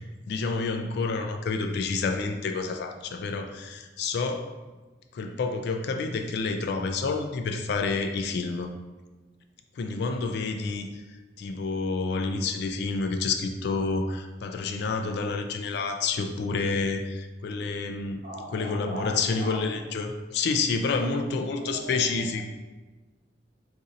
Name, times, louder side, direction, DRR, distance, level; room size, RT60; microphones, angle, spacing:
voice 1, 0.3-4.5 5.1-8.7 9.8-11.0 11.4-18.2 18.5-22.4, left 4 dB, 65° left, 5 dB, 0.3 m, -29 dB
voice 2, 18.2-19.9 20.8-22.4, right 1 dB, 45° right, -4 dB, 0.9 m, -40 dB
2.6 x 2.5 x 4.0 m, 1.2 s
head